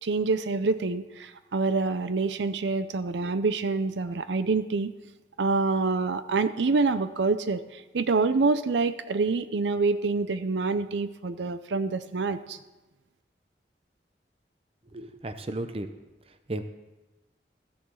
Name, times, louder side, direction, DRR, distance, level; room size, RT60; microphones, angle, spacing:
voice 1, 0.0-4.9 5.4-12.6, right 4 dB, 85° right, 13 dB, 0.5 m, -26 dB
voice 2, 14.9-15.9 16.5-16.6, right 1 dB, 30° right, 9 dB, 0.6 m, -34 dB
14.0 x 7.0 x 6.3 m, 1.1 s
head